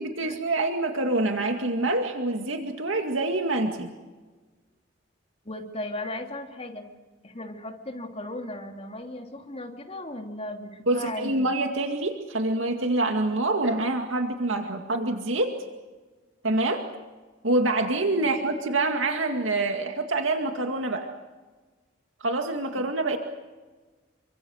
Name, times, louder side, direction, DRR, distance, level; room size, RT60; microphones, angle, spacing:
voice 1, 0.0-3.9 10.9-15.6 16.4-16.9 17.4-21.1 22.2-23.2, right 2 dB, 80° right, 4 dB, 2.2 m, -26 dB
voice 2, 5.4-6.9 7.2-11.5 18.2-18.5 22.8-22.9, left 1 dB, 30° left, 3 dB, 3.0 m, -36 dB
29.5 x 24.5 x 6.5 m, 1.3 s
head